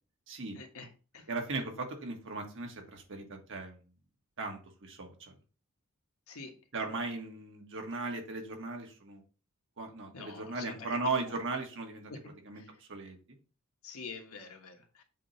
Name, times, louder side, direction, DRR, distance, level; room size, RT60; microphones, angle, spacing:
voice 1, 0.5-0.9 1.1-1.2 6.3-6.5 10.1-11.0 12.1-12.2 12.5-12.7 13.8-15.0, left 4 dB, 65° left, 3 dB, 1.4 m, -46 dB
voice 2, 1.3-3.9 4.4-5.3 6.7-9.2 9.8-13.2, right 3 dB, 60° right, 3 dB, 1.6 m, -37 dB
7.3 x 3.0 x 5.5 m, 0.35 s
head